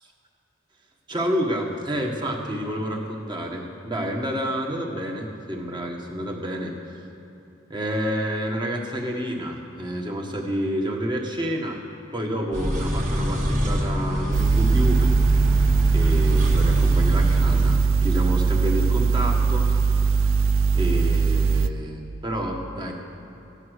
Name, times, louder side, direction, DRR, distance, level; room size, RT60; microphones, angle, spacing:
voice 1, 1.1-7.0 7.7-11.8 12.1-15.1 15.9-19.7 19.9-20.3 20.7-22.9, equal, 20° right, 1 dB, 1.4 m, -29 dB
sound 1, 12.5-17.8, equal, 40° right, 1.7 m, -26 dB
sound 2, 14.3-21.7, right 5 dB, 70° right, 0.4 m, -21 dB
15.5 x 9.8 x 6.4 m, 3.0 s
head